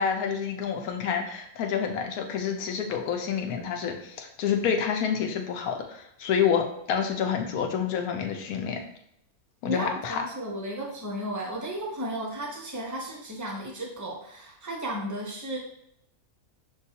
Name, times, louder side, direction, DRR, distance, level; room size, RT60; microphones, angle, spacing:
voice 1, 0.0-8.8 9.6-10.2, left 7 dB, 80° left, 4 dB, 1.1 m, -28 dB
voice 2, 9.7-15.6, right 1 dB, 25° right, -1 dB, 0.4 m, -34 dB
6.6 x 2.3 x 2.8 m, 0.73 s
omnidirectional pair, 1.6 m